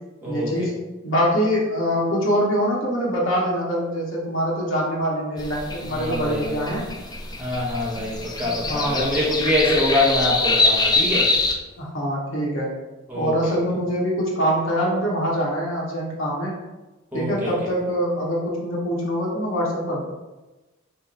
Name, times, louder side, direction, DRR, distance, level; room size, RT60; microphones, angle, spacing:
voice 1, 0.3-0.7 1.0-6.9 8.7-9.0 11.8-12.7 13.1-16.5 17.1-20.0, equal, 70° left, -4 dB, 1.2 m, -24 dB
sound 1, 5.4-11.5, left 3 dB, 20° left, 0.5 m, -24 dB
voice 2, 5.9-6.5 7.4-11.3 13.1-13.3 17.1-17.5, left 1 dB, 10° right, -6 dB, 1.1 m, -24 dB
3.5 x 3.1 x 4.3 m, 1.1 s
head